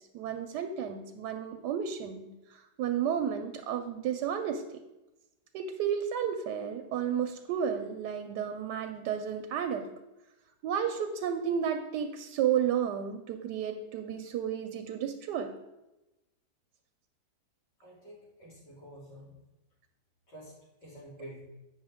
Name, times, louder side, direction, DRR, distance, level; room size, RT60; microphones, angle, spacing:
voice 1, 0.1-4.8 5.5-9.8 10.6-15.5, right 8 dB, 85° right, 7 dB, 1.2 m, -32 dB
voice 2, 17.8-19.4 20.3-20.6 20.8-21.4, right 1 dB, 85° left, -6 dB, 3.7 m, -48 dB
8.7 x 6.1 x 3.5 m, 0.97 s
omnidirectional pair, 1.8 m